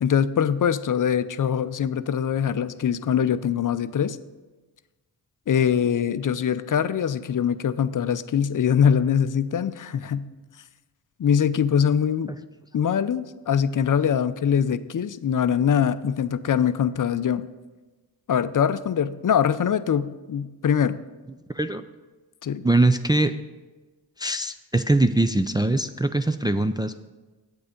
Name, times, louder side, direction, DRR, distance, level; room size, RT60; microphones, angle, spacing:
voice 1, 0.0-4.2 5.5-10.3 11.2-12.4 12.7-17.5 18.3-21.0 22.4-22.6, left 8 dB, 45° left, 14 dB, 0.6 m, -23 dB
voice 2, 21.5-21.8 22.6-23.3 24.2-27.0, right 2 dB, 10° right, 8 dB, 0.4 m, -22 dB
8.6 x 8.2 x 5.1 m, 1.2 s
cardioid pair, 60°, 45 cm